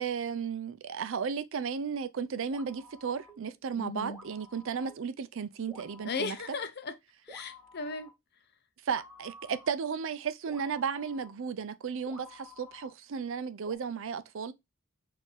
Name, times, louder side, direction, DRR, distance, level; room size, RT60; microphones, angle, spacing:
voice 1, 0.0-6.4 8.9-14.5, right 6 dB, 60° right, 0.4 m, -34 dB
sound 1, 2.5-3.5 4.1-5.1 5.7-6.5 7.3-8.1 8.9-9.7 10.5-11.3 12.1-12.9 13.7-13.8, left 1 dB, 5° right, 1.6 m, -52 dB
voice 2, 3.7-4.2 6.0-6.9 7.3-8.1, left 4 dB, 50° left, 0.7 m, -36 dB
6.3 x 2.7 x 3.1 m
head